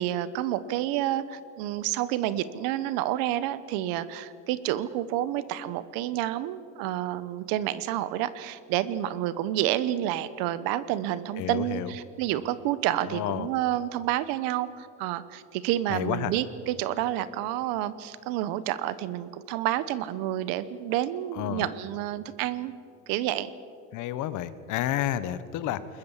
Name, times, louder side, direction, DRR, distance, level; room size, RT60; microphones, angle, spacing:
voice 1, 0.0-22.7 23.1-23.5, right 13 dB, 70° right, 15 dB, 1.1 m, -29 dB
voice 2, 11.4-11.9 13.1-13.5 15.9-16.3 21.3-21.7 23.9-26.0, left 12 dB, 55° left, 14 dB, 1.3 m, -31 dB
21.5 x 20.5 x 7.3 m, 2.3 s
cardioid pair, 140°, 36 cm